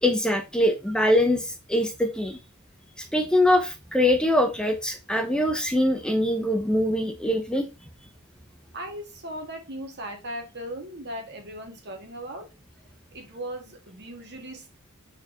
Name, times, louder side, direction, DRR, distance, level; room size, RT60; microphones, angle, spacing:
voice 1, 0.0-2.4 3.0-7.7, left 1 dB, 5° left, 5 dB, 0.6 m, -23 dB
voice 2, 8.7-12.5 13.1-14.9, right 1 dB, 50° right, 4 dB, 1.9 m, -38 dB
4.6 x 4.4 x 5.4 m, 0.28 s
head